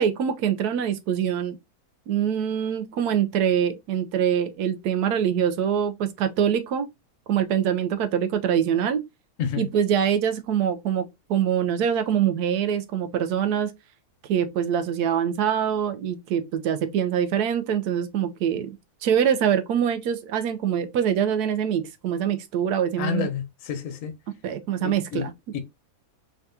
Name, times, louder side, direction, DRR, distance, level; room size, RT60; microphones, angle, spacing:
voice 1, 0.0-1.6 2.1-6.9 7.3-9.0 9.6-11.0 11.3-13.7 14.3-18.8 19.0-23.3 24.4-25.3, right 9 dB, 85° right, 1.1 m, -24 dB
voice 2, 23.0-24.1 24.8-25.6, left 8 dB, 60° left, 1.2 m, -30 dB
3.6 x 3.4 x 2.7 m
omnidirectional pair, 1.6 m